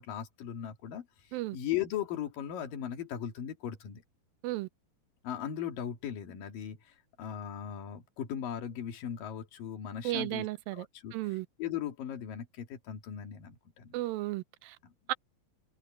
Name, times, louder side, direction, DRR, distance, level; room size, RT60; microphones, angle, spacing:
voice 1, 0.0-4.0 5.2-10.5 10.7-14.0 14.8-14.9, left 10 dB, 70° left, 3.9 m, -38 dB
voice 2, 10.0-10.9 11.1-11.5 13.9-14.8 15.1-15.2, right 18 dB, 85° right, 2.4 m, -34 dB
omnidirectional pair, 4.1 m